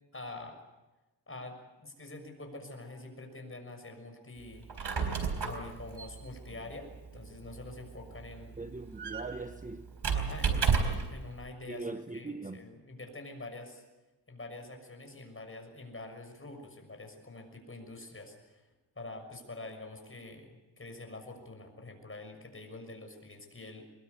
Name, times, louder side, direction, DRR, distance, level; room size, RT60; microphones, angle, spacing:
voice 1, 0.1-0.6 1.3-4.8 5.4-8.6 10.1-13.8 14.3-18.7 18.9-23.8, left 2 dB, 30° left, 6.4 m, -46 dB
Squeak, 4.5-11.2, right 5 dB, 70° right, 4.1 m, -33 dB
voice 2, 8.6-9.9 11.7-12.6, right 3 dB, 20° right, 1.0 m, -40 dB
24.0 x 21.5 x 8.2 m
cardioid pair, 85°, 43 cm